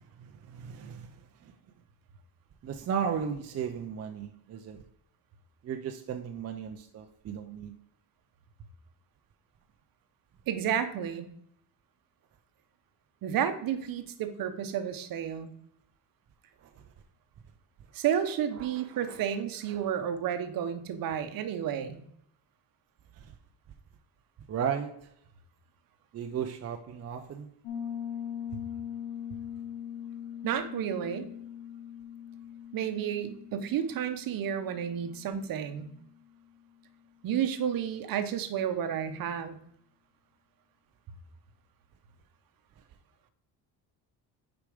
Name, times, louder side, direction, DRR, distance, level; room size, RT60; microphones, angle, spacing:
voice 1, 0.2-1.1 2.6-4.8 5.6-7.7 18.6-19.2 23.2-23.3 24.5-24.9 26.1-27.5, right 7 dB, 40° right, 4 dB, 0.6 m, -35 dB
voice 2, 10.5-11.3 13.2-15.5 17.9-22.0 30.4-31.3 32.7-35.9 37.2-39.6, right 9 dB, 55° right, 9 dB, 1.0 m, -31 dB
Piano, 27.6-36.2, left 9 dB, 60° left, 1.5 m, -41 dB
6.7 x 5.1 x 5.0 m, 0.70 s
cardioid pair, 135°, 40 cm